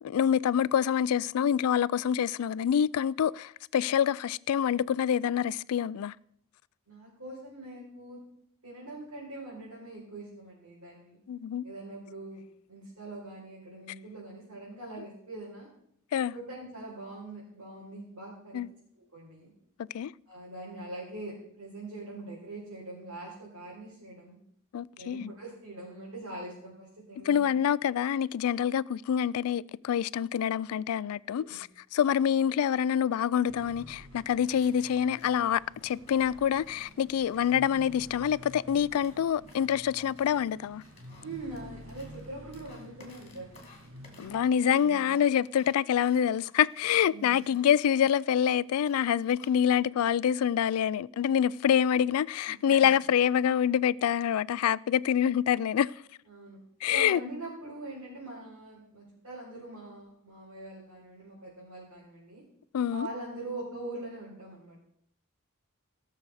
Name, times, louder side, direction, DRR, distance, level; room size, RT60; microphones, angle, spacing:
voice 1, 0.0-6.1 11.3-11.6 16.1-16.3 18.5-18.7 19.9-20.1 24.7-25.3 27.3-40.8 44.2-55.9 56.8-57.2 62.7-63.1, left 9 dB, 85° left, 0.3 m, -26 dB
voice 2, 6.9-8.2 8.6-11.2 11.6-12.4 12.7-15.7 16.3-18.6 19.0-19.5 20.3-24.4 25.0-27.5 31.3-31.6 41.2-43.6 44.2-45.1 47.1-47.2 52.5-52.9 56.3-56.6 56.9-62.4 62.9-64.8, right 2 dB, 85° right, 4.3 m, -43 dB
sound 1, 33.5-44.4, equal, 70° right, 1.9 m, -50 dB
sound 2, 34.4-38.5 38.9-49.7, left 3 dB, 30° left, 2.4 m, -58 dB
17.5 x 6.6 x 4.8 m
head